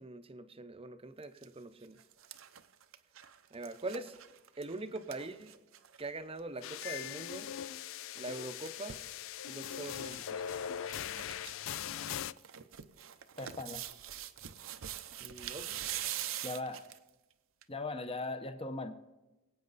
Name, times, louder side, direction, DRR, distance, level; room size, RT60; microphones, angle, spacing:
voice 1, 0.0-2.0 3.5-4.2 4.6-5.5 6.0-7.5 8.2-9.0 9.5-10.4 15.2-15.7, right 2 dB, 25° right, 11 dB, 0.7 m, -43 dB
sound 1, 1.2-1.4 1.8-6.1 6.4-6.5 6.6-6.9 8.2-9.1 9.7-10.2 10.4-10.5 10.9-11.5 11.9-17.1 17.6-17.7, right 11 dB, 70° right, 0.7 m, -43 dB
sound 2, 6.6-12.3, left 9 dB, 65° left, 0.4 m, -40 dB
voice 2, 13.4-13.8 16.4-16.8 17.7-19.0, left 2 dB, 25° left, 8 dB, 0.9 m, -39 dB
23.0 x 8.7 x 4.0 m, 1.1 s
head